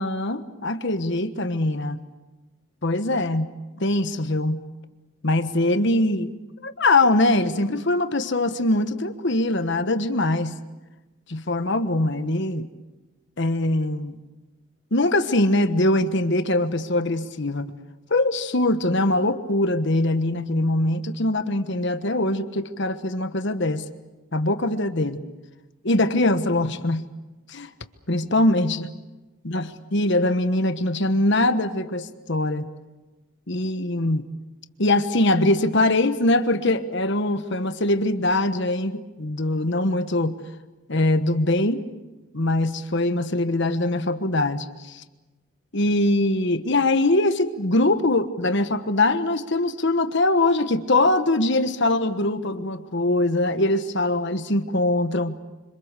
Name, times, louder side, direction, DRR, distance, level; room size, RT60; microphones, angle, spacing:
voice 1, 0.0-2.0 2.8-3.5 3.8-4.6 5.2-6.3 6.6-10.5 11.3-12.7 13.4-14.2 14.9-17.7 18.1-23.8 24.3-25.2 25.8-27.1 27.5-27.7 28.1-28.9 29.4-32.7 33.5-34.2 34.8-40.4 40.9-41.8 42.3-45.0 45.7-55.3, left 2 dB, 55° left, 10 dB, 1.3 m, -22 dB
26.0 x 26.0 x 6.8 m, 1.1 s
head